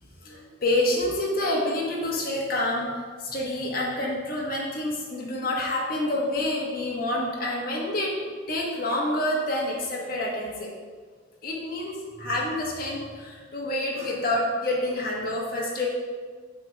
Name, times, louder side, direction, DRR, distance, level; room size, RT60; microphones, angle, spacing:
voice 1, 0.2-2.9 3.2-8.1 8.5-10.7 11.4-15.9, left 1 dB, 50° left, -3 dB, 1.4 m, -28 dB
7.5 x 3.7 x 5.2 m, 1.5 s
head